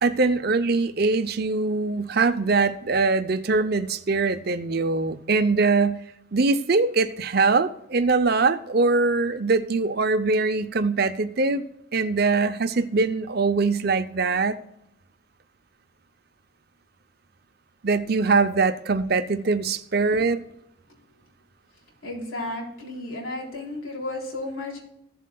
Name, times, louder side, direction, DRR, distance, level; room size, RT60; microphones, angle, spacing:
voice 1, 0.0-6.0 6.3-11.6 11.9-14.6 17.8-20.4, right 3 dB, 50° right, 0.6 m, -22 dB
voice 2, 22.0-24.8, left 2 dB, 80° left, 3.6 m, -33 dB
15.5 x 7.4 x 2.3 m
head